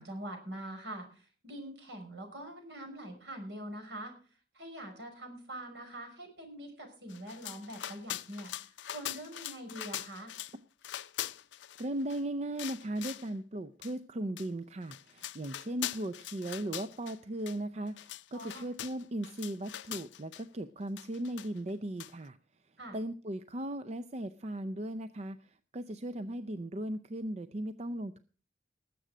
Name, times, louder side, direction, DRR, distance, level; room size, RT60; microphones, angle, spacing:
voice 1, 0.0-4.1 4.5-8.5 8.9-10.3 18.3-18.6 22.8-23.0, right 1 dB, 70° right, 4 dB, 5.4 m, -44 dB
sound 1, 7.1-10.6 10.8-12.2 12.6-13.3 13.8-13.9 14.4-14.5 14.8-17.2 17.5-17.6 17.9-20.4 21.0-21.7 22.0-22.1, left 12 dB, 75° left, 0.5 m, -42 dB
voice 2, 11.8-22.4 22.9-28.2, right 1 dB, 35° right, 12 dB, 0.5 m, -37 dB
19.5 x 7.7 x 5.0 m, 0.39 s
head